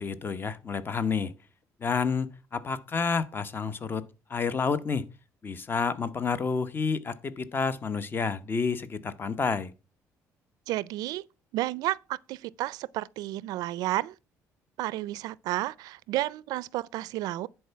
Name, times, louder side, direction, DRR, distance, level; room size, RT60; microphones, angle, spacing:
voice 1, 0.0-1.3 1.8-4.0 4.3-5.1 5.4-9.7, left 5 dB, 35° left, 0.9 m, -29 dB
voice 2, 10.7-11.2 11.5-14.1 14.8-17.5, right 16 dB, 80° right, 0.4 m, -31 dB
10.5 x 4.5 x 5.7 m
cardioid pair, 95°, 7 cm